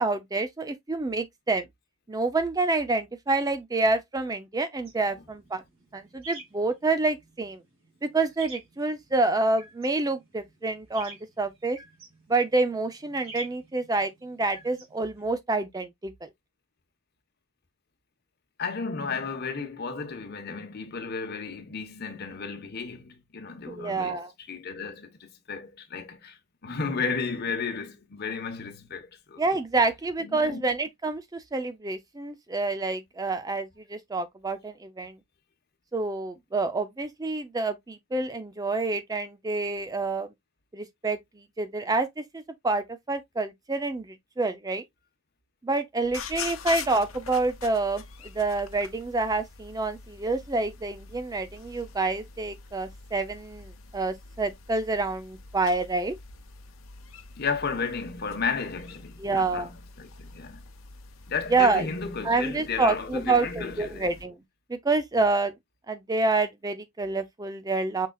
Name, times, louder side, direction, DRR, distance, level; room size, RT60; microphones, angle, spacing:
voice 1, 0.0-1.6 2.1-5.6 5.9-7.6 8.0-11.8 12.3-16.3 23.7-24.3 29.4-35.2 35.9-40.3 40.7-44.8 45.6-56.1 59.2-59.7 61.5-61.9 62.2-64.4 64.7-65.5 65.9-68.1, right 3 dB, 20° right, 0.4 m, -28 dB
sound 1, 4.9-15.3, right 2 dB, 75° right, 2.7 m, -50 dB
voice 2, 18.6-24.2 24.5-26.4 26.6-29.4 30.2-30.6 57.4-60.6 61.3-64.1, left 5 dB, 50° left, 1.0 m, -33 dB
sound 2, 46.0-64.2, left 5 dB, 90° left, 0.9 m, -44 dB
5.6 x 3.8 x 2.3 m
head